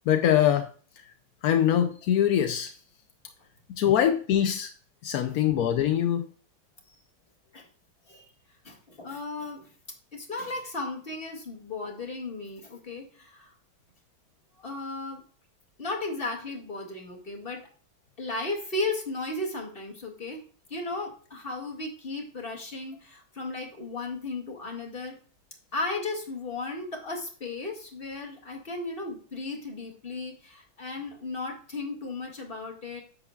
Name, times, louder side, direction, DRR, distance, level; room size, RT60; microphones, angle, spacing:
voice 1, 0.1-0.7 1.1-1.2 1.4-2.7 3.7-4.7 5.0-6.3, left 10 dB, 70° left, 0.9 m, -23 dB
voice 2, 8.6-9.7 10.1-13.5 14.6-15.2 15.8-17.6 18.2-25.2 25.7-33.0, left 2 dB, 25° left, 2.3 m, -35 dB
10.0 x 8.2 x 2.4 m
omnidirectional pair, 2.2 m